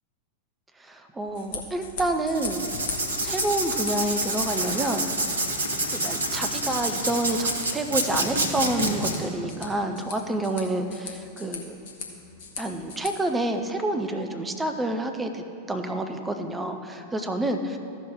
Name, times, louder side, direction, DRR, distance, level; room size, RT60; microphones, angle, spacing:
voice 1, 0.8-2.7 3.2-5.3 5.9-11.8 12.6-17.8, right 1 dB, 10° right, 6 dB, 0.7 m, -28 dB
sound 1, 1.2-13.1, left 5 dB, 55° left, 1.3 m, -41 dB
Writing, 2.3-9.1, right 2 dB, 75° right, 1.1 m, -27 dB
14.0 x 5.9 x 3.7 m, 2.7 s
figure-of-eight pair, 90°, 0 cm